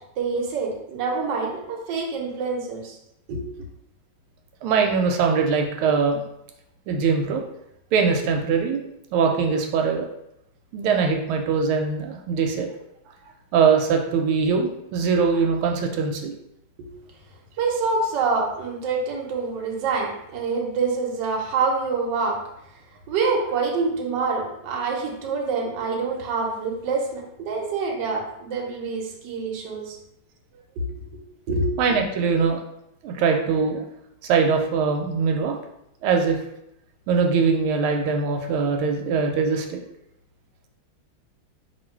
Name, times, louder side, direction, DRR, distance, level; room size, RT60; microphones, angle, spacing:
voice 1, 0.2-3.0 3.3-3.4 16.8-16.9 17.6-22.4 23.1-30.0 30.8-30.9 31.5-31.7, right 4 dB, 65° right, 0 dB, 1.3 m, -26 dB
voice 2, 4.6-6.2 6.9-7.4 7.9-8.8 9.1-10.1 10.7-12.7 13.5-16.3 31.8-32.6 33.0-33.8 34.2-35.5 36.0-36.4 37.1-39.8, right 5 dB, 90° right, 3 dB, 1.5 m, -22 dB
3.0 x 2.7 x 4.4 m, 0.80 s
omnidirectional pair, 2.3 m